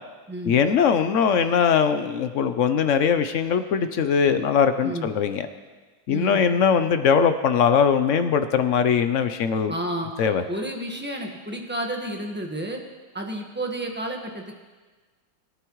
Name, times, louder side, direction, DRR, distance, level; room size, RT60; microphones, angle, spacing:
voice 1, 0.5-5.5 6.1-9.7 10.2-10.4, left 7 dB, 70° left, 9 dB, 0.7 m, -21 dB
voice 2, 6.1-6.4 9.7-10.1 10.5-12.8 13.1-14.5, right 1 dB, 5° right, 1 dB, 1.2 m, -31 dB
22.5 x 11.5 x 3.1 m, 1.3 s
omnidirectional pair, 2.0 m